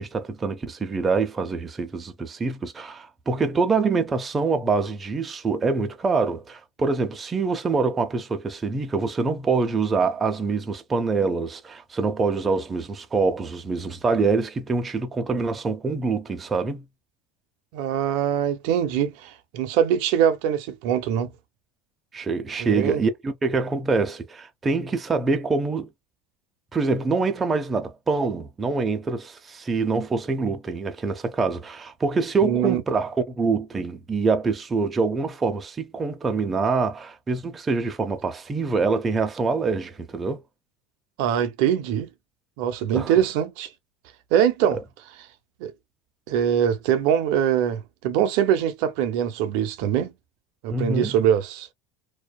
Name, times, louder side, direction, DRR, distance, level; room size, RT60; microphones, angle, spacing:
voice 1, 0.0-16.8 22.1-25.9 26.7-40.4 42.9-43.1 50.7-51.1, right 4 dB, 20° right, 0.5 m, -25 dB
voice 2, 17.7-21.3 22.6-23.0 32.4-32.8 41.2-42.1 42.6-43.7 44.3-44.8 45.6-45.7 46.3-50.1 50.6-51.7, right 9 dB, 75° right, 0.5 m, -23 dB
2.6 x 2.2 x 2.2 m
supercardioid pair, 120°, 0 cm